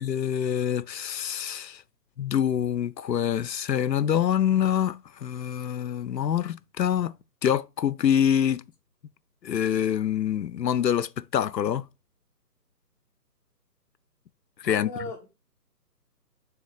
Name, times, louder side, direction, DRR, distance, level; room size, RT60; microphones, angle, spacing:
voice 1, 0.0-1.8 2.2-7.2 7.4-8.6 9.4-11.8 14.6-14.9, left 9 dB, 85° left, 0.6 m, -25 dB
voice 2, 14.6-15.2, left 2 dB, 15° left, 0.8 m, -36 dB
6.1 x 3.7 x 4.6 m
figure-of-eight pair, 145°, 49 cm